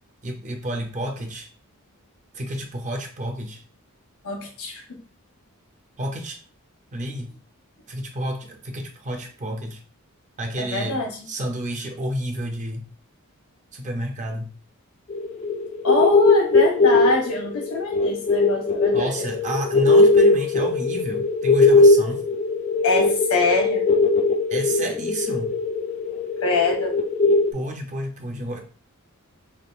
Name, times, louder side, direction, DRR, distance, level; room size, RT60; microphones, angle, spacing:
voice 1, 0.2-1.5 2.3-3.6 6.0-6.4 6.9-7.3 7.9-9.8 10.4-12.8 13.7-14.5 18.9-22.2 24.5-25.5 27.5-28.6, equal, 35° right, 3 dB, 0.6 m, -30 dB
voice 2, 4.2-4.8 10.6-11.1 15.8-19.1 22.8-23.8 26.4-27.0, left 3 dB, 75° left, 1 dB, 1.0 m, -24 dB
sound 1, 15.1-27.5, left 3 dB, 30° left, 0.4 m, -19 dB
3.5 x 2.4 x 2.5 m, 0.39 s
head